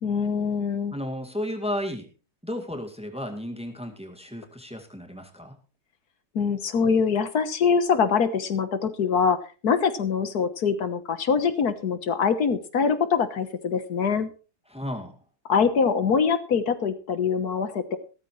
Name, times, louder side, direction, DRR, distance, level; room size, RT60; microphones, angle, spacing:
voice 1, 0.0-0.9 6.4-9.4 9.6-14.3 15.5-18.0, left 6 dB, 80° left, 10 dB, 1.8 m, -24 dB
voice 2, 0.9-2.1 2.4-5.6 14.7-15.2, left 1 dB, 5° right, 3 dB, 2.1 m, -33 dB
16.5 x 13.5 x 3.2 m, 0.34 s
omnidirectional pair, 1.6 m